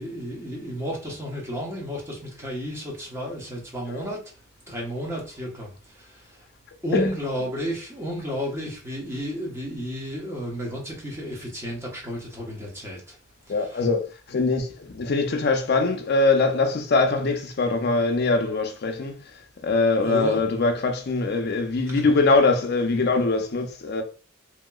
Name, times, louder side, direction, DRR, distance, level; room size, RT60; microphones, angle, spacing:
voice 1, 0.0-4.2 4.7-6.1 6.8-13.0 20.0-20.4 22.0-22.1, equal, 15° right, 0.9 m, -32 dB
voice 2, 13.5-14.0 14.3-19.2 19.6-24.0, left 3 dB, 55° left, 0.5 m, -22 dB
2.9 x 2.8 x 2.3 m
head